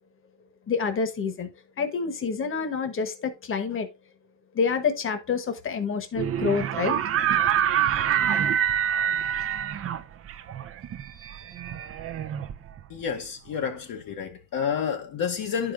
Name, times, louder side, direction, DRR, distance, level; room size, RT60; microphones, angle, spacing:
voice 1, 0.7-1.5 1.8-3.9 4.5-7.0, left 5 dB, 30° left, 1.1 m, -27 dB
sound 1, 6.2-13.0, right 9 dB, 35° right, 0.5 m, -26 dB
voice 2, 12.9-15.7, left 7 dB, 55° left, 1.0 m, -30 dB
11.5 x 5.0 x 2.4 m
cardioid pair, 130°, 41 cm